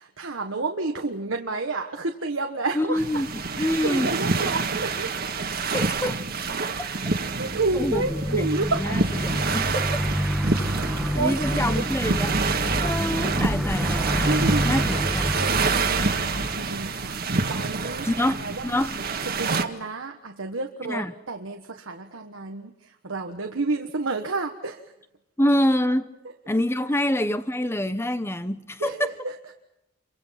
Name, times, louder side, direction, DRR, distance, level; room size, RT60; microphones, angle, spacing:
voice 1, 0.0-3.2 3.5-5.1 7.1-9.0 10.7-11.8 14.2-14.9 15.4-19.0 19.2-24.8 28.8-29.4, right 3 dB, 90° right, 1.4 m, -30 dB
voice 2, 2.7-3.3 3.6-4.1 5.7-6.2 7.8-9.9 11.1-12.3 12.8-14.4 14.6-15.4 18.0-19.0 20.9-21.1 25.4-26.1 26.5-29.1, left 1 dB, 15° left, 1.0 m, -26 dB
sound 1, 3.0-19.6, right 4 dB, 50° right, 1.7 m, -27 dB
sound 2, 7.3-17.5, equal, 5° right, 1.3 m, -28 dB
29.0 x 24.0 x 5.9 m
head